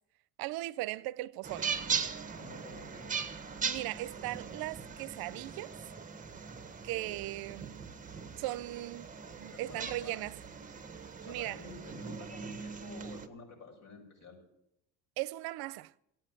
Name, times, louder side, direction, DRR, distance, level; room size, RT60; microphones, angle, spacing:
voice 1, 0.4-1.7 3.6-5.7 6.8-7.8 8.4-9.1 9.4-10.4 11.3-11.6 15.2-15.9, right 17 dB, 75° right, 0.6 m, -38 dB
sound 1, 1.4-13.3, right 6 dB, 20° right, 1.4 m, -40 dB
voice 2, 2.4-3.1 9.5-10.3 11.0-14.4, left 3 dB, 55° left, 7.2 m, -50 dB
15.0 x 9.0 x 8.9 m
cardioid pair, 95°, 37 cm